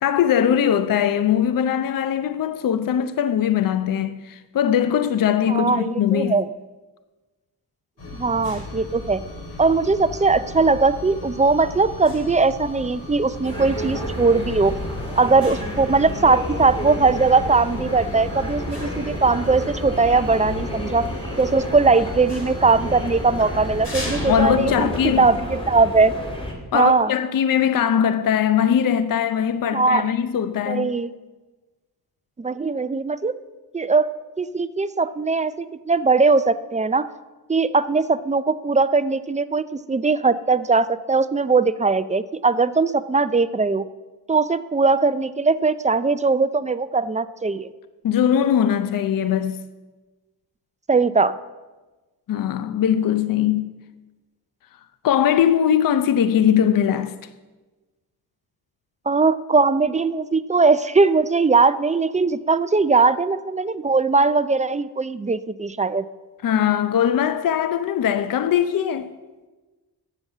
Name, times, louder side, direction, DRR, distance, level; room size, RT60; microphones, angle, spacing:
voice 1, 0.0-6.4 24.3-25.3 26.7-30.9 48.0-49.6 52.3-53.7 55.0-57.2 66.4-69.1, left 9 dB, 55° left, 0.6 m, -20 dB
voice 2, 5.5-6.5 8.1-9.2 9.6-14.7 15.2-21.1 21.4-24.9 25.2-26.1 26.7-27.1 29.7-30.1 30.7-31.1 32.4-33.3 33.7-37.1 37.5-43.9 44.3-47.7 50.9-51.3 59.1-66.0, right 4 dB, 20° right, 0.4 m, -20 dB
sound 1, 8.0-25.3, left 2 dB, 80° left, 3.9 m, -36 dB
sound 2, 13.4-26.5, equal, 15° left, 3.2 m, -31 dB
8.0 x 7.0 x 7.2 m
cardioid pair, 50°, 41 cm